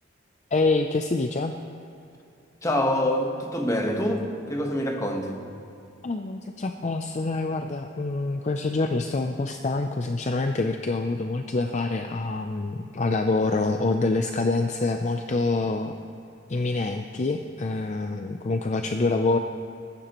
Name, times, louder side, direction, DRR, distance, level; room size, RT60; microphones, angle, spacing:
voice 1, 0.5-1.5 6.0-16.0 16.5-19.4, left 3 dB, 35° left, 6 dB, 0.4 m, -26 dB
voice 2, 2.6-5.4, left 1 dB, 15° left, 2 dB, 1.2 m, -26 dB
19.5 x 15.0 x 3.0 m, 2.6 s
head